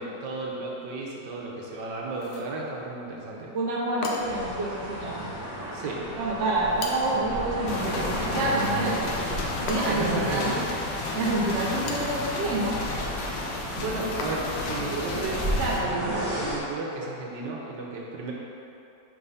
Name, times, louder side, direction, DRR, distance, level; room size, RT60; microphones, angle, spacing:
voice 1, 0.0-3.5 5.7-6.0 8.7-9.0 9.9-10.6 13.7-18.3, right 3 dB, 80° right, -3 dB, 1.5 m, -33 dB
sound 1, 2.1-2.6 4.0-4.5 6.8-7.3 9.7-10.2 11.6-12.2 14.2-14.7, left 3 dB, 70° left, 1.1 m, -36 dB
voice 2, 3.5-5.3 6.2-9.0 9.7-10.5 11.1-12.8 15.6-15.8 16.0-16.2, right 2 dB, 50° right, -4 dB, 1.0 m, -27 dB
sound 2, 4.2-16.6, equal, 10° right, 0.7 m, -34 dB
sound 3, 7.7-15.8, left 3 dB, 85° left, 1.4 m, -33 dB
5.0 x 3.8 x 5.5 m, 2.9 s
omnidirectional pair, 1.9 m